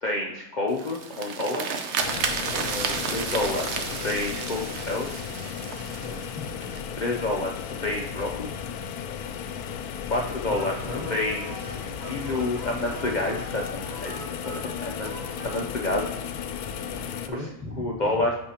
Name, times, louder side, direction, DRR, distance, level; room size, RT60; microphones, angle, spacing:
voice 1, 0.0-1.6 2.6-5.1 6.9-8.5 10.1-10.7 11.1-11.8 12.1-14.2 14.5-15.1 15.4-16.1 17.8-18.3, left 2 dB, 55° left, -1 dB, 0.5 m, -29 dB
sound 1, 0.7-6.8, right 5 dB, 60° right, 0.9 m, -32 dB
sound 2, 2.0-17.3, left 7 dB, 85° left, 1.1 m, -35 dB
voice 2, 2.3-2.7 6.0-6.5 10.4-11.2 17.2-18.2, left 1 dB, ahead, -3 dB, 1.2 m, -39 dB
sound 3, 10.5-15.6, right 1 dB, 25° right, 0.4 m, -42 dB
8.4 x 5.5 x 2.9 m, 0.88 s
omnidirectional pair, 1.6 m